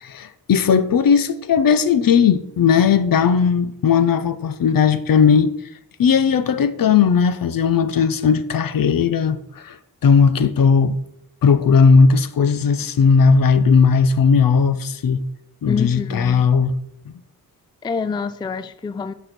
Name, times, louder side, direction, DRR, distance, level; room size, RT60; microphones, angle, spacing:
voice 1, 0.0-5.5 6.0-9.8 10.0-10.9 11.4-15.2 15.6-16.7, left 6 dB, 65° left, 0.7 m, -16 dB
voice 2, 15.7-16.5 17.8-19.1, left 5 dB, 15° left, 0.3 m, -27 dB
9.3 x 6.3 x 4.4 m
wide cardioid pair, 120°, 37 cm